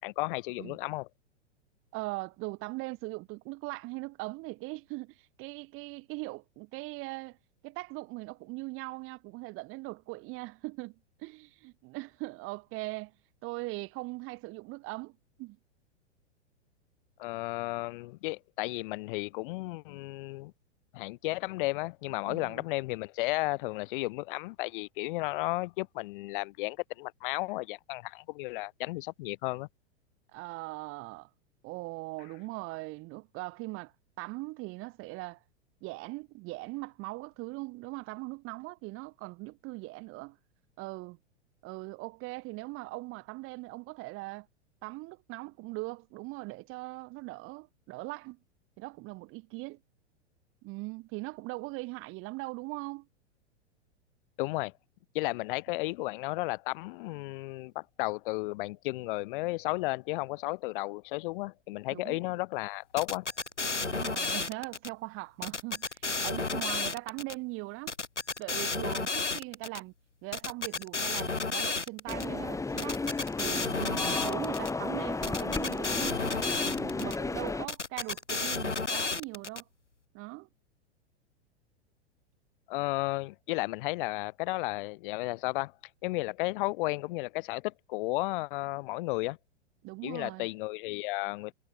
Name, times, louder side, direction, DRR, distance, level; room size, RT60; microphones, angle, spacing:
voice 1, 0.0-1.1 17.2-20.5 20.9-29.7 54.4-54.7 55.1-63.3 82.7-85.7 86.0-89.4 90.0-91.5, left 22 dB, 50° left, 5.2 m, -33 dB
voice 2, 1.9-7.4 7.6-13.1 13.4-15.6 22.3-22.6 30.3-31.3 31.6-35.4 35.8-40.4 40.8-41.2 41.6-44.5 44.8-48.4 48.8-49.8 50.6-53.1 61.9-62.2 63.8-67.9 68.4-69.9 70.2-73.1 73.4-76.2 76.6-79.7 80.1-80.5 89.8-90.5, right 24 dB, 35° right, 3.3 m, -40 dB
sound 1, 63.0-64.9 65.4-67.3 67.9-69.8 70.3-72.3 72.8-74.7 75.2-77.2 77.7-79.6, left 4 dB, 90° left, 1.6 m, -32 dB
sound 2, 72.1-77.7, left 3 dB, 10° left, 5.9 m, -33 dB
figure-of-eight pair, 100°, 34 cm